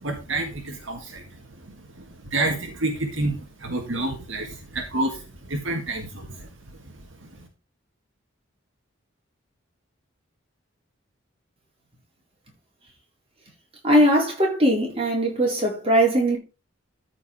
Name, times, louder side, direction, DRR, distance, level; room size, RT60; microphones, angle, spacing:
voice 1, 0.0-1.2 2.3-5.2 5.5-6.5, right 2 dB, 70° right, 1.8 m, -28 dB
voice 2, 13.8-16.4, right 1 dB, 30° right, 4.4 m, -20 dB
13.5 x 5.0 x 4.8 m
head